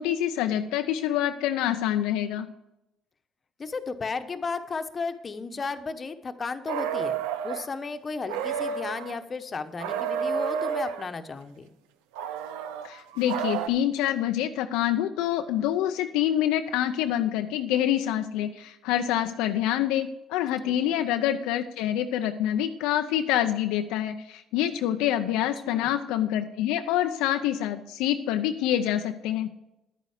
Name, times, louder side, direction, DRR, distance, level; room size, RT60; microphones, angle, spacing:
voice 1, 0.0-2.5 12.8-29.5, left 11 dB, 80° left, 7 dB, 0.5 m, -26 dB
voice 2, 3.6-7.2 7.4-11.7 20.7-21.0 25.7-25.9, left 4 dB, 35° left, 8 dB, 1.1 m, -34 dB
sound 1, 6.7-7.7 8.3-9.2 9.8-11.1 12.2-13.7, right 7 dB, 85° right, 0.6 m, -30 dB
10.5 x 9.2 x 5.0 m, 0.88 s
supercardioid pair, 65°, 0 cm